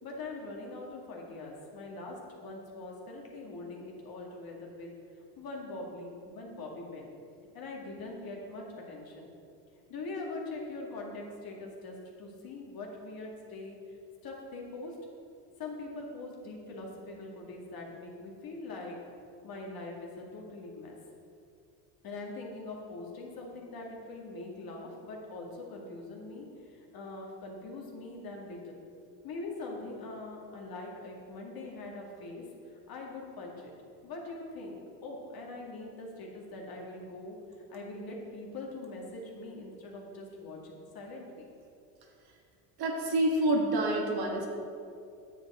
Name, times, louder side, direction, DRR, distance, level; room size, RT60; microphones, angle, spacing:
voice 1, 0.0-4.9 5.4-7.1 7.5-9.3 9.9-13.8 14.2-14.9 15.6-19.0 19.4-21.0 22.0-28.8 29.2-32.4 32.9-33.7 34.0-37.4 37.7-41.5, left 2 dB, 45° left, -1 dB, 2.2 m, -42 dB
voice 2, 42.8-44.5, right 1 dB, 50° right, 0 dB, 1.8 m, -27 dB
9.6 x 7.2 x 4.3 m, 2.5 s
supercardioid pair, 85°, 48 cm